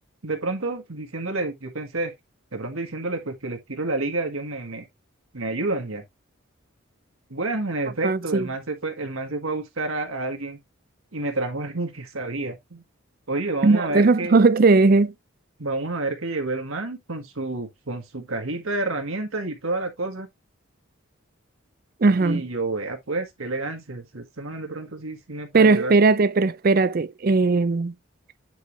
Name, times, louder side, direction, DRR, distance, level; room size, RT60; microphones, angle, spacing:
voice 1, 0.2-2.1 2.5-4.8 5.3-6.0 7.3-10.6 11.1-12.8 13.3-14.3 15.6-20.3 22.2-25.9, right 2 dB, 80° right, 1.7 m, -29 dB
voice 2, 8.0-8.5 13.6-15.1 22.0-22.4 25.5-27.9, right 3 dB, 45° right, 0.4 m, -18 dB
9.3 x 4.6 x 3.1 m
head